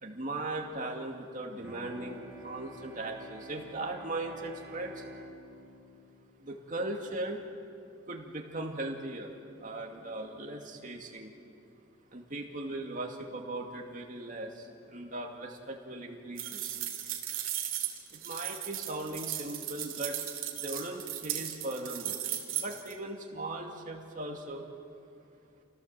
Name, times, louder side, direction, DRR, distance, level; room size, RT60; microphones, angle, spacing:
voice 1, 0.0-4.9 6.4-7.4 8.1-9.3 9.6-11.3 12.1-14.5 14.9-16.7 18.2-20.1 20.6-22.2 22.6-24.7, right 2 dB, 35° right, 1 dB, 2.4 m, -38 dB
Bowed string instrument, 1.6-7.2, right 1 dB, 5° right, 4.2 m, -50 dB
sound 1, 16.4-22.9, right 11 dB, 65° right, 2.8 m, -36 dB
29.0 x 17.0 x 7.6 m, 2.5 s
head